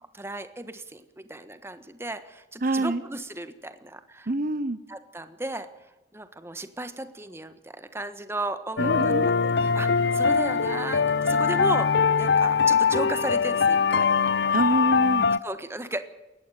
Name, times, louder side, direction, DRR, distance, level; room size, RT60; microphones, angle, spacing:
voice 1, 0.1-4.3 4.9-5.7 6.1-14.1 15.4-16.0, right 2 dB, 15° right, 10 dB, 1.4 m, -35 dB
voice 2, 2.6-3.0 4.3-4.8 8.8-9.3 14.5-15.3, right 2 dB, 50° right, 14 dB, 0.9 m, -25 dB
sound 1, 8.8-15.4, left 5 dB, 70° left, 0.6 m, -22 dB
19.0 x 15.0 x 9.3 m, 1.0 s
head